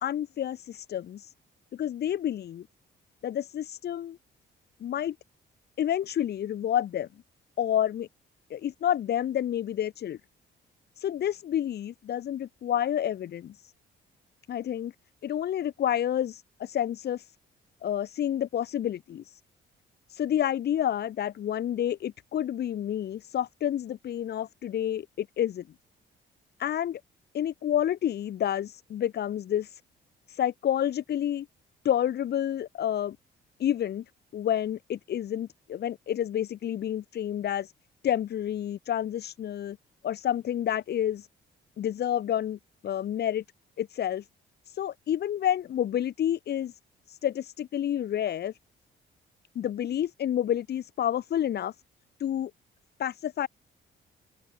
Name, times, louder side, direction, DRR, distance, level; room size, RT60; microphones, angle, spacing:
voice 1, 0.0-1.3 1.7-2.7 3.2-4.2 4.8-5.1 5.8-7.1 7.6-8.1 8.5-10.2 11.0-13.7 14.5-14.9 15.2-17.3 17.8-19.4 20.1-25.6 26.6-27.0 27.3-29.8 30.3-31.5 31.8-33.2 33.6-34.0 34.3-37.7 38.0-39.8 40.0-41.3 41.8-43.4 43.8-44.3 44.7-46.7 47.1-48.5 49.6-51.7 52.2-52.5 53.0-53.5, left 10 dB, 55° left, 0.7 m, -29 dB
open air
cardioid pair, 90°, 20 cm